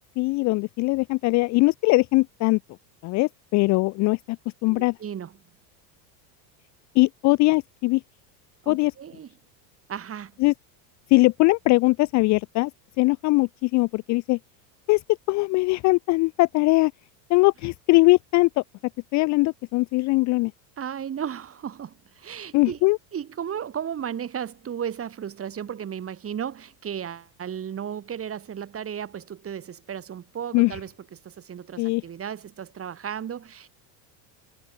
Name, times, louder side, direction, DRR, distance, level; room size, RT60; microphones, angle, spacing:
voice 1, 0.2-2.6 3.0-4.4 4.6-4.9 7.0-8.0 8.7-8.9 10.4-10.5 11.1-12.7 13.0-14.4 14.9-15.0 15.3-16.9 17.3-18.5 19.1-20.5 22.5-23.0 30.5-30.8 31.8-32.0, left 23 dB, 40° left, 0.4 m, -21 dB
voice 2, 4.7-5.3 8.6-9.3 9.9-10.3 20.8-22.8 23.1-33.7, right 8 dB, 25° right, 2.5 m, -34 dB
supercardioid pair, 115°, 49 cm